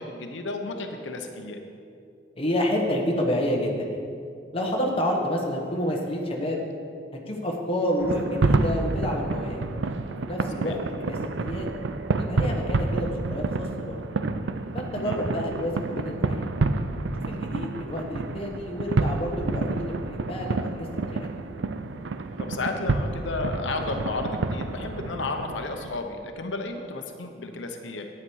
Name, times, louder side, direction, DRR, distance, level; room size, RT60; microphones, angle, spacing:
voice 1, 0.0-1.6 10.6-10.8 15.0-15.2 22.4-28.1, left 3 dB, 85° left, 5 dB, 0.9 m, -33 dB
voice 2, 2.3-4.0 4.5-6.7 7.3-9.7 10.1-11.7 12.2-14.0 14.7-16.5 17.3-21.4, equal, 30° left, 0 dB, 1.3 m, -29 dB
sound 1, 8.0-26.0, right 3 dB, 80° right, 0.5 m, -29 dB
9.8 x 9.3 x 4.7 m, 2.4 s
head